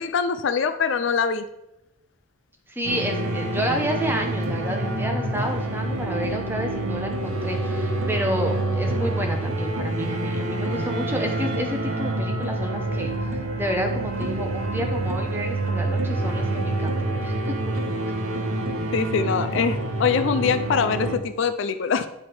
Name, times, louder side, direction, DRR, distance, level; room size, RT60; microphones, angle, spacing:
voice 1, 0.0-1.5 18.9-22.1, left 6 dB, 60° left, 0.4 m, -23 dB
voice 2, 2.7-13.1 13.5-17.6, equal, 10° right, 0.8 m, -30 dB
sound 1, 2.8-21.2, right 2 dB, 75° right, 1.0 m, -27 dB
9.8 x 3.4 x 4.3 m
head